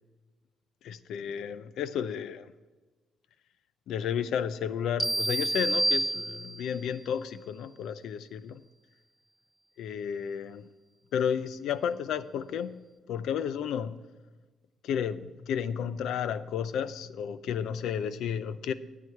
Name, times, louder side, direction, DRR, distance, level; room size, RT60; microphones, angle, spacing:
voice 1, 0.8-2.5 3.9-8.6 9.8-10.7 11.1-14.0 14.8-18.7, left 8 dB, 80° left, 0.5 m, -32 dB
sound 1, 5.0-6.8, right 2 dB, 10° right, 0.5 m, -28 dB
9.7 x 9.4 x 4.5 m
cardioid pair, 90°, 0 cm